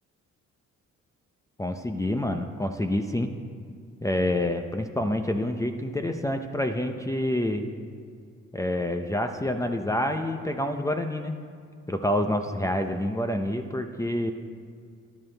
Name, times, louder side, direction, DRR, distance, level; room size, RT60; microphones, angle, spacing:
voice 1, 1.6-3.3 4.0-7.7 8.5-11.3 11.9-14.3, left 1 dB, 10° left, 6 dB, 0.6 m, -27 dB
13.0 x 11.0 x 3.4 m, 2.2 s
cardioid pair, 90°, 30 cm